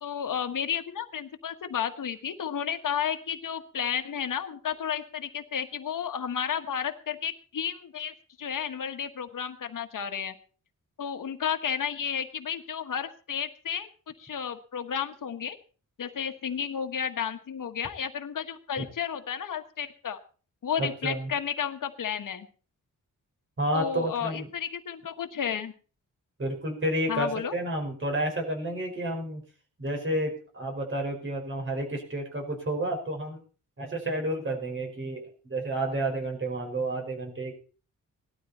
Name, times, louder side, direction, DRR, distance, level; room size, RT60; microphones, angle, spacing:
voice 1, 0.0-10.3 11.0-15.6 16.0-20.2 20.6-22.5 23.7-25.7 27.1-27.5, left 8 dB, 75° left, 7 dB, 1.5 m, -32 dB
voice 2, 20.8-21.3 23.6-24.5 26.4-29.4 29.8-33.4 33.8-37.5, right 1 dB, 40° right, 1 dB, 5.2 m, -30 dB
18.5 x 12.5 x 4.3 m, 0.39 s
wide cardioid pair, 165°, 32 cm